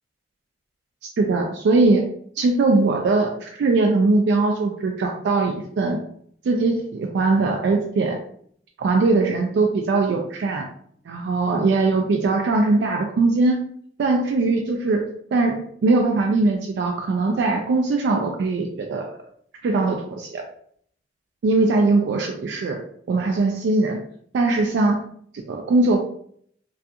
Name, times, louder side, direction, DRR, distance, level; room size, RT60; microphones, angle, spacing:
voice 1, 1.2-2.1 2.4-6.0 6.4-8.2 8.8-10.7 11.1-13.6 14.0-15.0 15.3-19.1 19.6-20.4 21.4-22.8 23.1-24.0 24.3-25.0 25.5-26.0, right 3 dB, 85° right, 2 dB, 0.3 m, -20 dB
2.3 x 2.3 x 2.7 m, 0.63 s
head